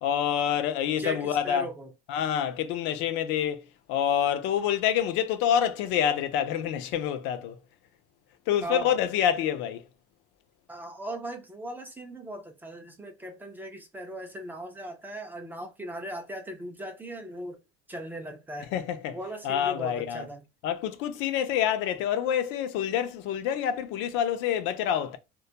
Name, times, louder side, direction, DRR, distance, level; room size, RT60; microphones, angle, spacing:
voice 1, 0.0-1.7 2.1-3.6 3.9-7.6 8.5-9.8 18.7-19.2 19.4-20.2 20.6-25.2, left 9 dB, 65° left, 0.4 m, -27 dB
voice 2, 1.0-1.9 8.6-8.9 10.7-17.6 17.9-18.7 19.1-20.4, right 1 dB, 10° right, 0.3 m, -38 dB
2.2 x 2.1 x 2.6 m
cardioid pair, 135°, 21 cm